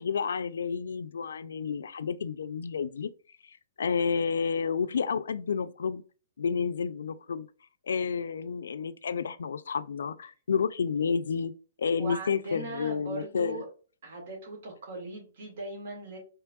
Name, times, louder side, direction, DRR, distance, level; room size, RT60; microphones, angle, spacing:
voice 1, 0.0-3.1 3.5-6.0 6.4-7.5 7.9-13.6, left 6 dB, 85° left, 0.3 m, -30 dB
voice 2, 12.0-13.7 14.0-16.2, right 2 dB, 65° right, 1.8 m, -39 dB
4.5 x 3.3 x 2.3 m
hypercardioid pair, 135°, 0 cm